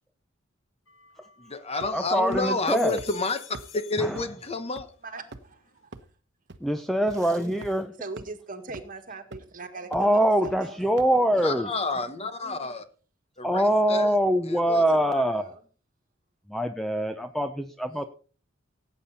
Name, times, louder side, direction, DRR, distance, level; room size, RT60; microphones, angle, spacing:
sound 1, 0.9-2.0 2.5-4.9 5.2-5.8, left 9 dB, 75° left, 1.7 m, -49 dB
voice 1, 1.4-4.9 11.4-12.9 13.4-14.1 14.5-14.8, left 3 dB, 30° left, 10 dB, 1.1 m, -30 dB
sound 2, 1.8-2.1 2.3-2.4 3.0-3.1 3.5-3.6 4.2-4.3 4.8-4.9 5.3-5.5 5.9-6.0 6.5-6.6 7.1-7.2 7.6-7.7 8.2-8.3 8.7-8.8 9.3-9.5 9.9-10.0 10.4-10.5 11.0-11.1, right 2 dB, 60° right, 1.0 m, -41 dB
voice 2, 1.9-3.0 4.0-4.2 6.6-7.9 9.9-11.7 13.4-15.5 16.5-18.0, equal, ahead, 7 dB, 0.6 m, -24 dB
voice 3, 5.0-5.9 8.0-10.8 14.7-15.6 17.9-18.1, right 3 dB, 45° right, 7 dB, 1.9 m, -40 dB
sound 3, 6.9-8.1 8.5-8.7, right 3 dB, 20° right, 4.8 m, -53 dB
17.5 x 8.6 x 4.2 m, 0.39 s
head